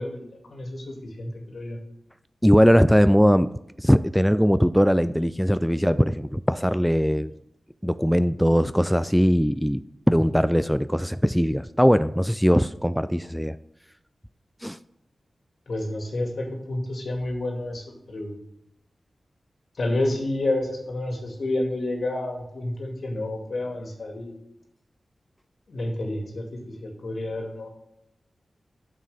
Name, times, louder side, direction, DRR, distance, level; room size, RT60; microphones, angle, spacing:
voice 1, 0.0-1.8 15.7-18.3 19.8-24.3 25.7-27.7, left 1 dB, 70° left, 1 dB, 2.1 m, -30 dB
voice 2, 2.4-3.5 3.8-7.3 7.8-9.8 10.1-13.6 14.6-14.8, equal, ahead, 13 dB, 0.3 m, -20 dB
9.2 x 6.6 x 3.4 m, 0.81 s
cardioid pair, 60°, 0 cm